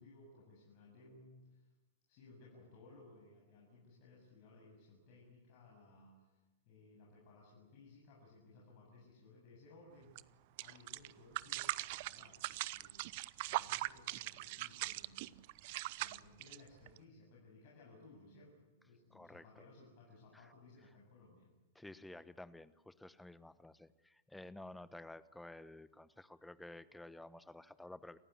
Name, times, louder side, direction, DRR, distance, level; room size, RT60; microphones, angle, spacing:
voice 1, 0.0-1.7 2.1-10.1 10.6-13.2 13.5-15.4 16.0-21.5, left 2 dB, 50° left, -2 dB, 7.8 m, -60 dB
sound 1, 10.2-10.3 10.6-17.0, right 19 dB, 55° right, 0.8 m, -41 dB
voice 2, 19.1-19.4 20.3-20.5 21.7-28.2, left 2 dB, 5° left, 15 dB, 1.1 m, -52 dB
29.5 x 15.5 x 9.7 m, 1.2 s
hypercardioid pair, 105°, 0 cm